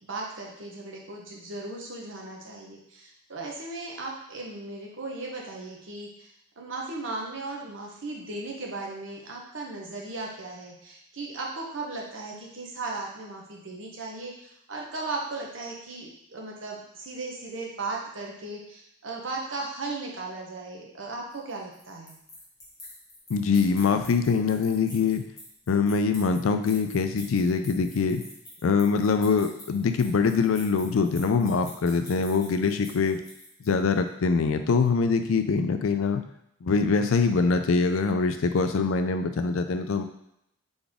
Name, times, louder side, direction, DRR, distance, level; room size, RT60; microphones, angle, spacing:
voice 1, 0.1-6.3 6.6-22.2, right 3 dB, 65° right, -1 dB, 1.0 m, -37 dB
sound 1, 21.3-33.9, left 1 dB, 15° left, 1.3 m, -46 dB
voice 2, 23.3-25.2 25.7-28.2 28.6-33.2 33.7-36.2 36.6-40.0, left 4 dB, 85° left, 8 dB, 0.4 m, -24 dB
4.0 x 3.5 x 3.5 m, 0.77 s
head